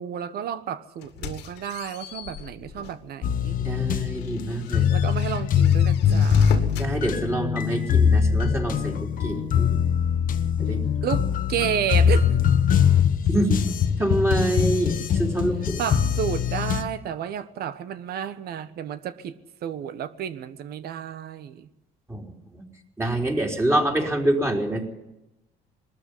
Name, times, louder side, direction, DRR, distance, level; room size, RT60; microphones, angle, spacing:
voice 1, 0.0-3.6 4.9-6.7 11.0-12.4 15.8-19.4 19.6-21.7, right 9 dB, 65° right, 1.2 m, -31 dB
sound 1, 1.0-3.1 3.6-3.7 4.1-6.9, left 7 dB, 85° left, 2.3 m, -39 dB
sound 2, 3.2-16.8, left 7 dB, 55° left, 1.2 m, -22 dB
voice 2, 3.6-4.9 6.8-9.8 10.6-10.8 13.3-13.6 14.0-15.8 22.1-22.6 23.0-24.9, right 1 dB, 15° right, 3.9 m, -26 dB
20.5 x 13.5 x 9.7 m
cardioid pair, 110°, 17 cm